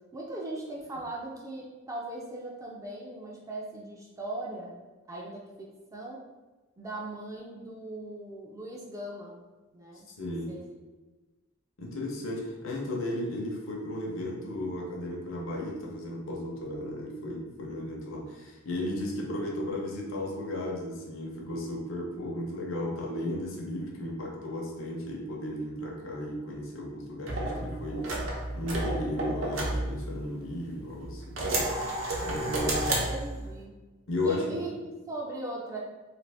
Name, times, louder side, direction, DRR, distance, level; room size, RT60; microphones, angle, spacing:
voice 1, 0.1-4.7 5.1-6.2 6.8-9.4 9.7-10.1 10.5-10.8 33.1-33.7 34.2-34.7 35.1-35.8, right 2 dB, 15° right, -3 dB, 0.3 m, -39 dB
voice 2, 10.2-10.5 11.8-31.4 32.2-33.1 34.1-34.6, left 1 dB, 75° left, -2 dB, 0.7 m, -34 dB
sound 1, 27.3-30.5 31.0-33.6, right 1 dB, 70° right, 0.8 m, -31 dB
2.9 x 2.5 x 3.3 m, 1.2 s
head